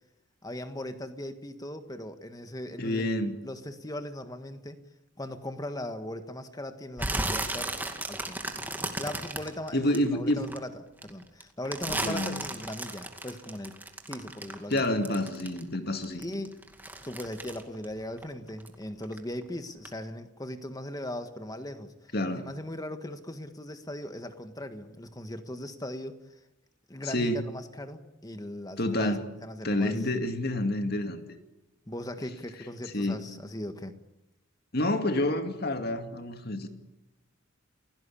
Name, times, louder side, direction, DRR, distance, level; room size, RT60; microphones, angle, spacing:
voice 1, 0.4-3.1 3.4-4.8 5.2-7.7 8.1-8.4 9.0-10.7 11.0-13.8 14.1-14.8 16.2-16.6 17.0-26.2 26.9-29.1 29.4-30.0 31.9-33.9, left 1 dB, 20° left, 9 dB, 1.6 m, -39 dB
voice 2, 2.8-3.4 9.7-10.5 11.9-12.5 14.7-16.2 22.1-22.5 27.0-27.4 28.8-29.3 29.6-31.2 32.9-33.2 34.7-36.7, left 1 dB, 50° left, 7 dB, 2.2 m, -28 dB
sound 1, 7.0-10.6 11.0-15.8 16.0-18.7 19.0-19.4 19.8-19.9, right 2 dB, 10° right, 2.3 m, -34 dB
29.5 x 17.0 x 8.6 m, 0.99 s
head